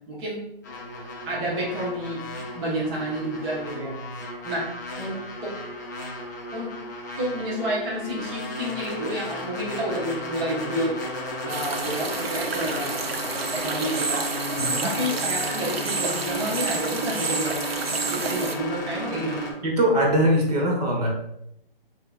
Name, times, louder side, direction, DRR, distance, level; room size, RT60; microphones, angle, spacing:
voice 1, 0.1-0.4 1.2-4.0 4.4-4.7 5.0-5.6 6.5-6.8 7.2-11.0 11.4-13.0 13.5-14.3 14.8-17.6 18.1-19.6, equal, 25° right, -7 dB, 1.0 m, -30 dB
sound 1, 0.6-19.5, equal, 20° left, 0.4 m, -34 dB
sound 2, 11.5-18.6, right 5 dB, 80° right, 0.6 m, -30 dB
voice 2, 19.6-21.1, equal, 40° right, -1 dB, 1.2 m, -21 dB
7.1 x 2.8 x 2.3 m, 0.77 s
figure-of-eight pair, 145°, 30 cm